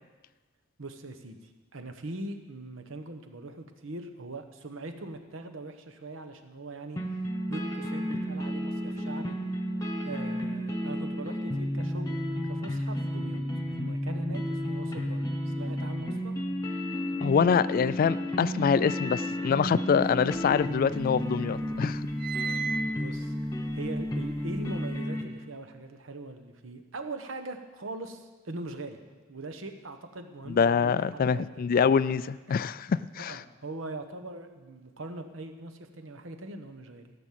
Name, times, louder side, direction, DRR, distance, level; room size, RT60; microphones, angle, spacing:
voice 1, 0.8-7.2 7.5-9.3 10.0-13.4 13.8-16.3 22.3-23.3 23.7-29.0 29.3-31.7 32.7-32.8 33.2-37.1, right 2 dB, 75° right, 7 dB, 1.1 m, -41 dB
sound 1, 7.0-25.2, equal, 15° left, 1.1 m, -32 dB
voice 2, 17.2-22.0 30.5-33.4, left 6 dB, 45° left, 17 dB, 0.3 m, -25 dB
sound 2, 20.2-21.2 21.6-25.0, right 5 dB, 45° right, 0.5 m, -37 dB
15.5 x 6.1 x 7.5 m, 1.3 s
head